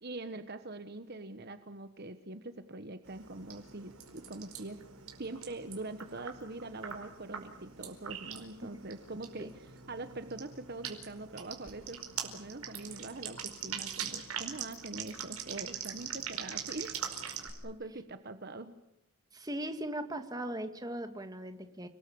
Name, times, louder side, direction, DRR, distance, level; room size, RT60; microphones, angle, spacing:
voice 1, 0.0-4.8 5.2-17.0 17.6-18.7, right 2 dB, 45° right, 10 dB, 1.2 m, -43 dB
sound 1, 3.0-17.5, right 8 dB, 80° right, 4.9 m, -43 dB
voice 2, 19.3-21.9, right 1 dB, 15° right, 7 dB, 1.9 m, -39 dB
30.0 x 20.5 x 8.6 m, 0.80 s
head